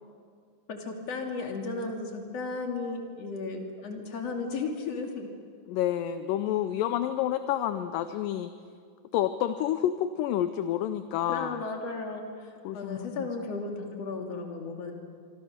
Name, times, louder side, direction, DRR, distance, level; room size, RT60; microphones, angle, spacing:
voice 1, 0.7-5.3 11.3-14.9, left 3 dB, 45° left, 2 dB, 3.3 m, -35 dB
voice 2, 5.7-8.5 9.1-11.6 12.6-13.3, left 11 dB, 75° left, 10 dB, 2.3 m, -29 dB
26.5 x 24.5 x 6.6 m, 2.2 s
omnidirectional pair, 4.2 m